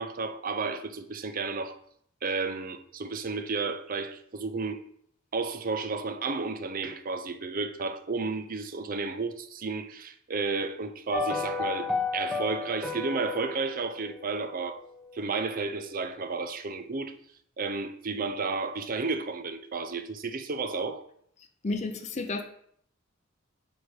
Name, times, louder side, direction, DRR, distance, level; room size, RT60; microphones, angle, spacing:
voice 1, 0.0-1.8 2.2-4.8 5.3-14.8 15.1-17.2 17.6-21.0, right 4 dB, 45° right, 0.6 m, -32 dB
sound 1, 11.1-15.4 15.7-15.8, left 4 dB, ahead, 0.8 m, -33 dB
voice 2, 21.6-22.4, left 3 dB, 35° left, 0.5 m, -31 dB
6.2 x 4.7 x 4.8 m
head